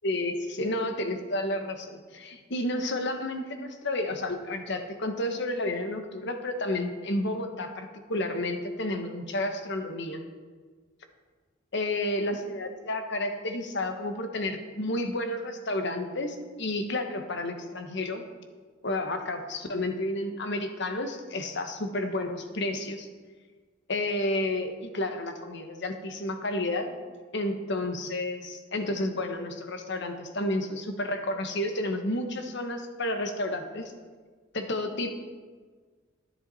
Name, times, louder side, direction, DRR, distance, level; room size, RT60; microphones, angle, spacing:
voice 1, 0.0-10.2 11.7-18.2 18.8-23.1 23.9-27.0 27.3-33.9 34.5-35.1, left 1 dB, 60° left, 6 dB, 1.2 m, -31 dB
13.0 x 10.5 x 4.2 m, 1.5 s
head